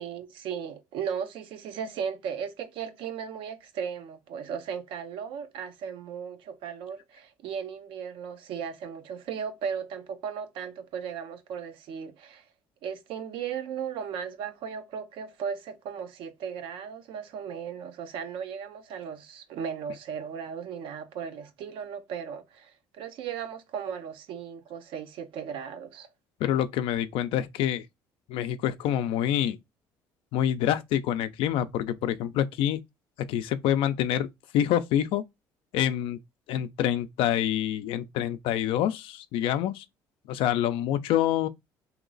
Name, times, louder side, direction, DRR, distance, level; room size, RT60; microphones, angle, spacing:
voice 1, 0.0-12.4 12.8-26.1, right 7 dB, 70° right, 0.7 m, -36 dB
voice 2, 26.4-27.8 28.3-29.6 30.3-32.8 33.3-34.3 34.5-35.2 35.7-36.2 36.5-39.8 40.3-41.5, left 11 dB, 75° left, 0.5 m, -26 dB
3.0 x 2.9 x 3.9 m
supercardioid pair, 80°, 9 cm